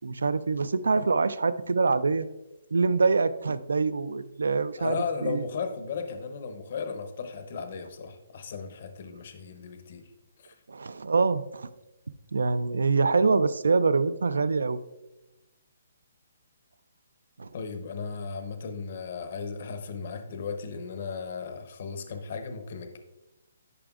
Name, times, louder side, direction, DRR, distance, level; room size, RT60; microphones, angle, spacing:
voice 1, 0.0-2.3 2.7-5.4 10.7-11.7 12.3-14.8 17.4-17.5, right 4 dB, 90° right, 15 dB, 0.4 m, -25 dB
voice 2, 4.8-10.1 10.4-10.5 17.5-23.0, left 5 dB, 55° left, 7 dB, 0.8 m, -35 dB
11.0 x 5.1 x 2.4 m, 0.99 s
hypercardioid pair, 155°, 0 cm